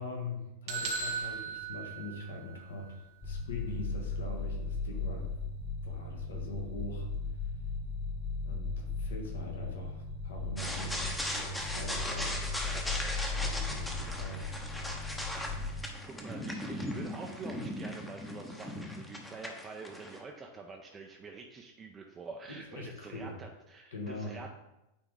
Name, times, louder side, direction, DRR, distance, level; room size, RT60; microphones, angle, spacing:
voice 1, 0.0-5.3 5.8-7.1 8.4-12.3 13.4-14.5 22.7-23.3 23.9-24.4, left 2 dB, 65° left, 2 dB, 1.3 m, -42 dB
sound 1, 0.7-2.6, right 5 dB, 50° right, 0.9 m, -37 dB
sound 2, 3.2-15.9, left 4 dB, 40° left, 1.5 m, -37 dB
sound 3, 10.6-20.2, left 1 dB, 5° left, 0.9 m, -38 dB
voice 2, 16.2-24.5, right 4 dB, 20° right, 2 dB, 0.6 m, -46 dB
9.0 x 3.6 x 3.7 m, 0.94 s
figure-of-eight pair, 90°, 0 cm